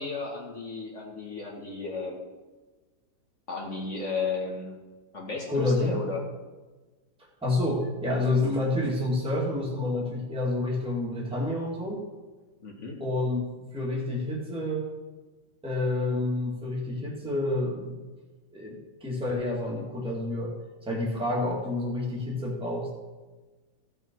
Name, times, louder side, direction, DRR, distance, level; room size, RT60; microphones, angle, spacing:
voice 1, 0.0-2.2 3.5-4.8 5.1-6.2 12.6-13.0, left 4 dB, 40° left, -1 dB, 1.9 m, -34 dB
voice 2, 5.5-6.0 7.4-12.0 13.0-14.9 15.6-18.0 18.5-20.5 20.8-22.9, left 2 dB, 5° right, -4 dB, 2.2 m, -29 dB
15.0 x 6.3 x 4.6 m, 1.2 s
omnidirectional pair, 2.1 m